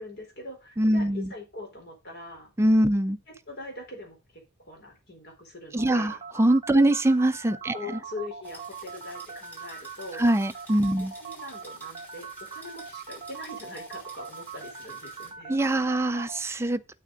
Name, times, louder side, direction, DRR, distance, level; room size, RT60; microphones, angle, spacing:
voice 1, 0.0-2.5 3.3-6.2 6.7-6.8 7.6-10.3 10.9-15.6, left 2 dB, 50° left, 4.3 m, -42 dB
voice 2, 0.8-1.3 2.6-3.2 5.7-7.8 10.2-11.1 15.5-16.8, right 1 dB, 10° right, 0.4 m, -23 dB
sound 1, 5.8-16.4, right 6 dB, 25° right, 1.0 m, -41 dB
sound 2, 8.4-15.3, right 1 dB, 10° left, 5.2 m, -51 dB
8.5 x 8.3 x 4.0 m
head